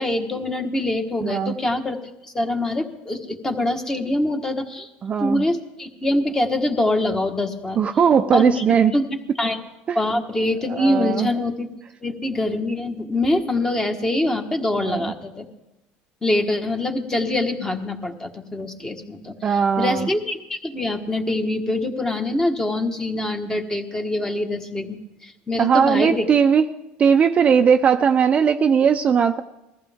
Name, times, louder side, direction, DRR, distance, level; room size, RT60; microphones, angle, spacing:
voice 1, 0.0-2.0 2.2-4.9 5.2-7.8 8.3-8.6 8.9-9.1 9.4-9.6 9.9-11.7 12.0-15.4 16.2-26.3, left 1 dB, 15° left, 5 dB, 1.5 m, -24 dB
voice 2, 1.2-1.6 5.0-5.5 7.8-8.9 9.9-10.0 10.7-11.3 14.9-15.1 19.4-20.1 25.6-26.7 27.0-29.4, right 7 dB, 30° right, 7 dB, 0.6 m, -18 dB
20.5 x 14.5 x 3.6 m, 0.94 s
cardioid pair, 120°, 4 cm